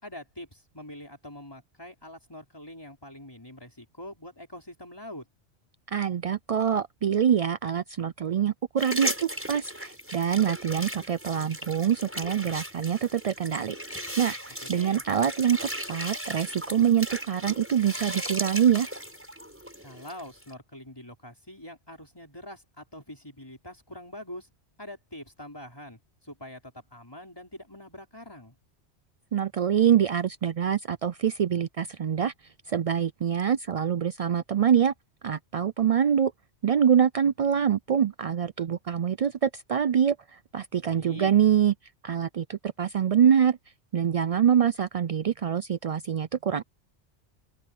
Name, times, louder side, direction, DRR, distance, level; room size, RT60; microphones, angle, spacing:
voice 1, 0.0-5.3 14.6-15.0 19.8-24.5 24.8-28.6 40.8-41.3, left 1 dB, 20° left, 5.4 m, -44 dB
voice 2, 5.9-18.9 29.3-32.3 32.7-34.9 35.2-36.3 36.6-41.7 42.0-43.6 43.9-46.6, right 8 dB, 75° right, 0.3 m, -25 dB
sound 1, 8.8-20.5, equal, 10° right, 7.5 m, -37 dB
open air
omnidirectional pair, 1.2 m